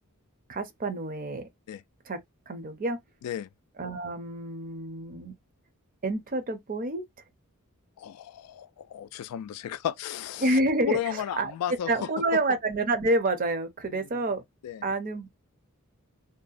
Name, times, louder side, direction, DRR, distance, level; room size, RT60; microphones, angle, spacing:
voice 1, 0.5-1.5 2.1-2.2 2.5-3.0 3.8-5.3 6.0-7.0 10.4-11.5 11.9-14.4 14.8-15.3, right 2 dB, 40° right, 0.6 m, -28 dB
voice 2, 8.0-10.6 10.9-12.4 13.9-14.1 14.6-14.8, left 10 dB, 90° left, 0.3 m, -34 dB
2.7 x 2.1 x 2.4 m
head